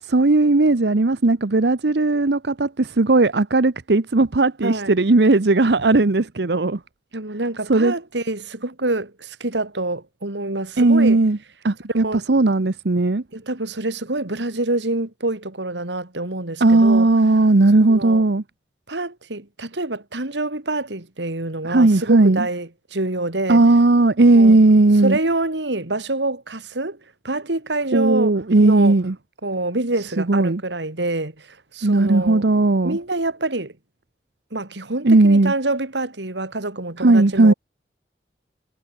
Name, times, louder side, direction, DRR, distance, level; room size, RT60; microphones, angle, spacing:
voice 1, 0.0-6.8 7.7-7.9 10.8-11.4 11.6-13.2 16.6-18.4 21.6-22.5 23.5-25.2 27.9-29.1 30.2-30.6 31.8-33.0 35.0-35.5 37.0-37.5, right 2 dB, 70° right, 0.9 m, -16 dB
voice 2, 4.6-4.9 7.1-11.2 11.8-12.2 13.3-17.1 17.9-18.2 18.9-23.6 24.3-24.6 25.0-27.0 27.2-28.3 28.6-28.9 29.4-31.5 31.7-32.4 32.8-33.7 34.5-37.5, right 2 dB, 85° right, 2.8 m, -26 dB
head